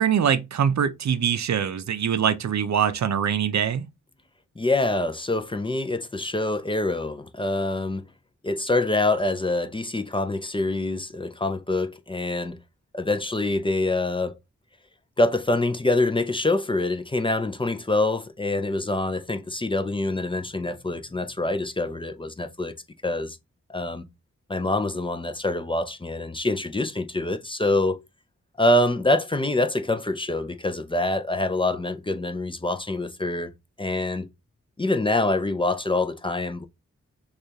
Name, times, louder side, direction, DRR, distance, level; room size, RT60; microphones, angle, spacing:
voice 1, 0.0-3.9, right 8 dB, 70° right, 0.5 m, -23 dB
voice 2, 4.6-8.0 8.4-12.6 12.9-14.4 15.2-22.7 23.0-23.4 23.7-24.0 24.5-28.0 28.6-33.5 33.8-34.3 34.8-36.6, left 2 dB, 20° left, 0.4 m, -25 dB
6.4 x 2.4 x 2.8 m
wide cardioid pair, 115°, 29 cm